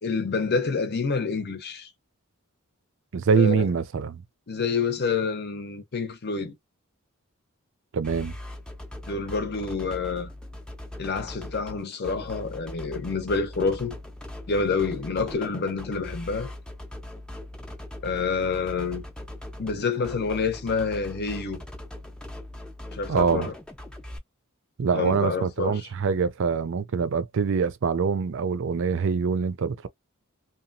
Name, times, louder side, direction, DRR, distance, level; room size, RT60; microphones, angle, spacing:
voice 1, 0.0-1.9 3.4-3.7 4.5-6.5 9.1-10.3 11.0-14.0 14.5-16.5 18.0-19.0 19.6-21.6 22.9-23.5 24.9-25.9, left 4 dB, 50° left, 0.7 m, -28 dB
voice 2, 3.1-4.2 7.9-8.3 23.1-23.5 24.8-29.9, right 5 dB, 60° right, 0.4 m, -24 dB
sound 1, 8.0-24.2, left 1 dB, 5° left, 0.5 m, -40 dB
2.9 x 2.3 x 2.6 m
head